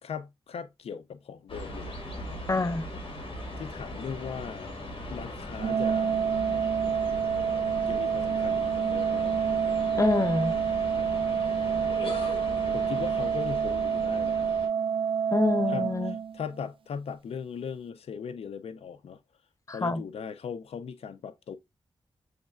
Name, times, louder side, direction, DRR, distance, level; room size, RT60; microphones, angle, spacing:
voice 1, 0.0-1.9 3.6-4.7 5.1-6.2 7.8-9.4 12.7-14.5 15.7-15.9 16.3-19.2 19.7-21.6, left 6 dB, 90° left, 0.5 m, -38 dB
sound 1, 1.5-14.7, left 1 dB, 60° left, 1.7 m, -39 dB
voice 2, 2.5-2.8 10.0-10.6 15.3-16.2 19.7-20.0, left 3 dB, 30° left, 0.6 m, -26 dB
Organ, 5.6-16.6, right 7 dB, 60° right, 0.4 m, -28 dB
6.9 x 3.2 x 2.4 m
cardioid pair, 65°, 10 cm